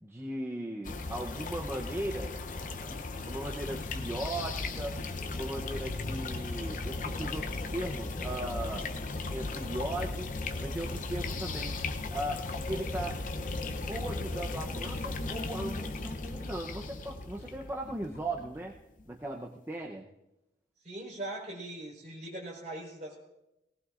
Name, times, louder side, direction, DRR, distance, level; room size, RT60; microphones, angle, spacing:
voice 1, 0.0-2.3 2.9-5.0 5.3-8.9 9.3-11.8 12.1-13.2 13.9-18.8 19.1-20.1, right 1 dB, 15° right, -1 dB, 0.7 m, -38 dB
sound 1, 0.8-19.0, left 3 dB, 45° left, 0.7 m, -36 dB
voice 2, 20.8-23.2, right 1 dB, 40° right, -3 dB, 4.4 m, -41 dB
19.5 x 18.5 x 2.5 m, 0.92 s
head